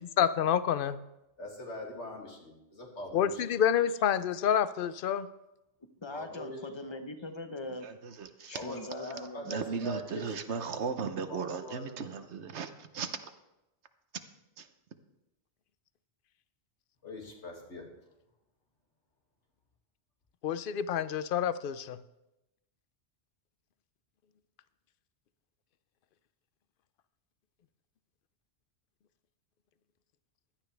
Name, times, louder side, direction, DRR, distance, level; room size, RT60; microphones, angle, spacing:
voice 1, 0.2-1.0 3.1-5.3 20.4-22.0, left 9 dB, 60° left, 14 dB, 0.7 m, -28 dB
voice 2, 1.4-3.4 6.1-6.6 8.5-10.6 11.3-12.1 17.0-17.9, left 1 dB, 90° left, -1 dB, 2.6 m, -42 dB
voice 3, 6.0-7.9 8.5-9.9, left 2 dB, 25° left, 7 dB, 0.9 m, -41 dB
voice 4, 7.8-8.6 9.5-13.3 14.6-14.7, right 5 dB, 75° right, 9 dB, 1.1 m, -36 dB
16.0 x 11.5 x 3.4 m, 0.92 s
omnidirectional pair, 1.2 m